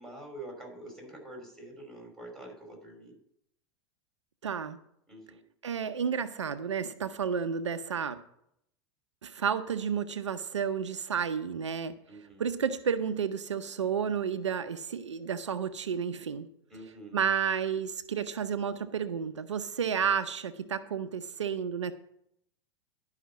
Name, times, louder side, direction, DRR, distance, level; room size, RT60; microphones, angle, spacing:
voice 1, 0.0-3.2 5.1-5.4 12.1-12.4 16.7-17.2, right 1 dB, ahead, 0 dB, 5.3 m, -46 dB
voice 2, 4.4-4.8 5.6-8.2 9.2-11.9 12.4-16.5 17.1-21.9, right 7 dB, 85° right, 11 dB, 0.7 m, -31 dB
11.5 x 5.8 x 7.3 m, 0.73 s
hypercardioid pair, 90°, 15 cm